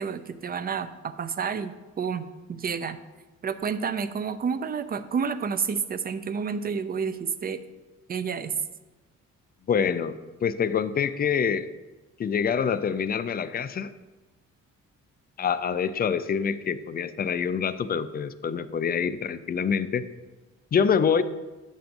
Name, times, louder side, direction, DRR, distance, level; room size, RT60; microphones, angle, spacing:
voice 1, 0.0-3.0 3.4-7.6 8.1-8.5, right 6 dB, 30° right, 12 dB, 0.5 m, -30 dB
voice 2, 9.7-11.7 12.2-13.9 15.4-20.0 20.7-21.2, left 7 dB, 30° left, 12 dB, 0.4 m, -26 dB
9.0 x 6.9 x 2.6 m, 1.2 s
cardioid pair, 90°, 30 cm